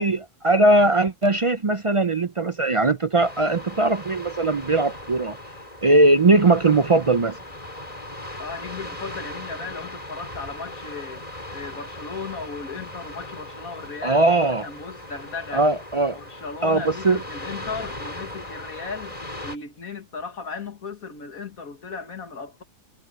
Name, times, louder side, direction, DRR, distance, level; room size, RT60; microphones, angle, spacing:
voice 1, 0.0-5.4 5.8-7.4 14.0-14.7 15.5-16.2 16.6-17.2, right 2 dB, 50° right, 0.4 m, -20 dB
sound 1, 3.2-19.6, left 1 dB, 25° left, 3.9 m, -38 dB
voice 2, 8.4-11.2 11.5-14.2 14.6-15.7 16.1-19.2 19.4-22.6, left 4 dB, 90° left, 2.3 m, -36 dB
omnidirectional pair, 1.4 m